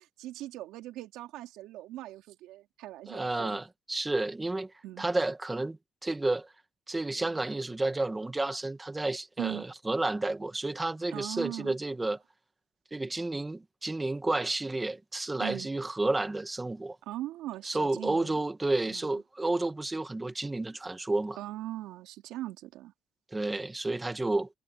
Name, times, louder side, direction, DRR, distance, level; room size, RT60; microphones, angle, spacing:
voice 1, 0.0-3.6 4.8-5.1 9.4-9.7 11.1-11.7 15.4-15.7 17.0-18.4 18.9-19.2 21.4-22.9, right 15 dB, 85° right, 3.8 m, -40 dB
voice 2, 3.1-4.7 5.0-6.5 6.9-12.2 12.9-17.0 17.6-21.4 23.3-24.5, right 2 dB, 15° right, 1.7 m, -31 dB
cardioid pair, 115°, 0 cm